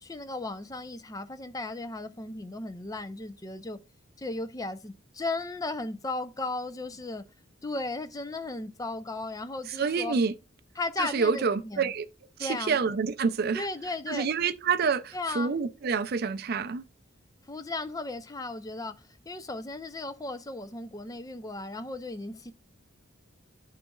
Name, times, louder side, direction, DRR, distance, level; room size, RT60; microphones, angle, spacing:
voice 1, 0.0-3.8 4.2-7.2 7.6-10.2 10.8-11.9 12.4-12.8 13.5-14.3 15.1-15.5 17.5-19.0 19.3-22.5, left 2 dB, 20° left, 0.4 m, -35 dB
voice 2, 9.7-10.3 11.0-12.1 12.4-13.7 14.1-16.8, right 5 dB, 50° right, 0.4 m, -27 dB
11.5 x 4.0 x 2.3 m
head